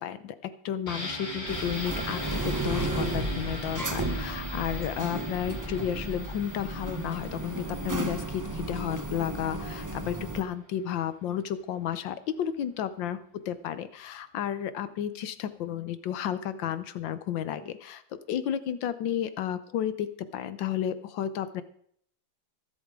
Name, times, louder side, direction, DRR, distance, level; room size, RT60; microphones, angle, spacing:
voice 1, 0.0-13.2 13.5-20.1 20.3-21.6, left 10 dB, 75° left, 13 dB, 1.5 m, -32 dB
sound 1, 0.9-10.5 10.8-10.9, equal, 20° left, 5.2 m, -41 dB
sound 2, 1.5-10.4, right 2 dB, 15° right, 0.6 m, -34 dB
23.5 x 8.1 x 3.7 m, 0.64 s
omnidirectional pair, 2.1 m